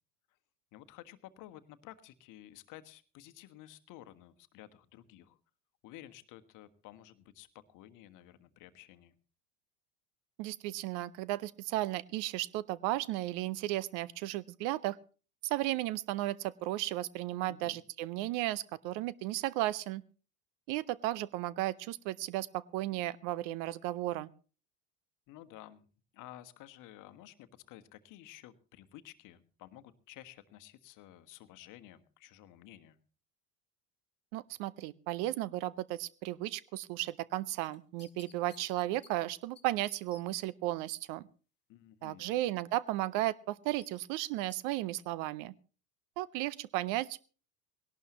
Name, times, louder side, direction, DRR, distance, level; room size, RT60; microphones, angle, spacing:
voice 1, 0.7-5.4 5.8-9.1 17.5-17.8 25.3-33.0 41.7-42.3, left 14 dB, 40° left, 12 dB, 1.3 m, -53 dB
voice 2, 10.4-15.0 15.4-20.0 20.7-24.3 34.3-41.3 42.0-45.5 46.2-47.3, right 16 dB, 40° right, 21 dB, 0.6 m, -34 dB
sound 1, 37.6-39.1 39.6-39.7 39.9-40.2 43.8-44.6 45.0-45.1, left 7 dB, 20° left, 1.6 m, -58 dB
20.5 x 18.0 x 3.0 m, 0.37 s
figure-of-eight pair, 75°, 46 cm